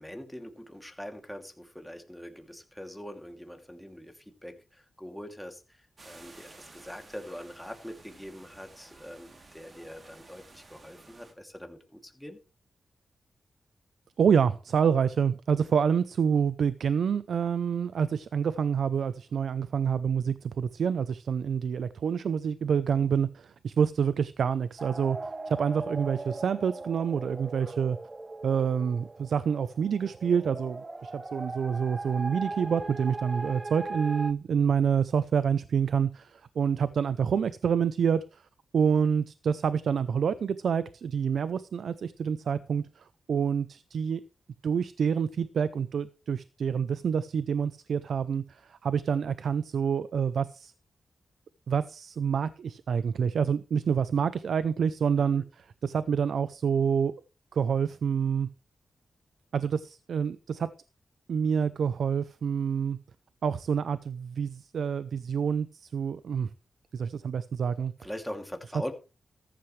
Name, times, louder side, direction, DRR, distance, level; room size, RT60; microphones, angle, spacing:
voice 1, 0.0-12.4 15.6-15.7 55.2-55.4 68.0-68.9, equal, 5° left, 4 dB, 2.7 m, -43 dB
sound 1, 6.0-11.3, right 3 dB, 45° right, 2.9 m, -53 dB
voice 2, 14.2-28.0 28.4-38.4 38.7-44.2 44.6-50.7 51.7-57.1 57.5-58.5 59.5-60.7 61.3-63.0 63.4-66.5 66.9-67.9, right 7 dB, 80° right, 15 dB, 0.6 m, -27 dB
sound 2, 24.8-34.3, right 3 dB, 30° right, 0.7 m, -39 dB
14.5 x 11.0 x 3.2 m, 0.32 s
cardioid pair, 60°, 0 cm